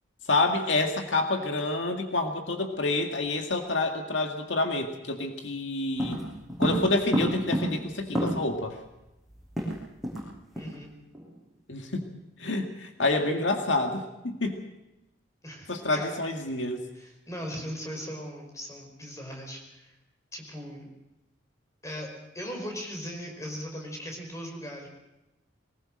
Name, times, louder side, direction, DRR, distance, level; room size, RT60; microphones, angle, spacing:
voice 1, 0.3-6.2 6.6-8.8 11.7-12.1 12.4-14.6 15.7-16.9, left 2 dB, 75° left, 4 dB, 2.0 m, -28 dB
sound 1, 6.0-8.7 8.9-9.0 9.3-10.3 10.6-10.8 11.1-11.4, equal, ahead, 7.4 m, -30 dB
voice 2, 10.5-10.9 15.4-16.2 16.9-19.9 20.3-20.9 21.8-24.9, equal, 15° left, 1 dB, 5.0 m, -39 dB
22.5 x 20.0 x 6.4 m, 0.96 s
head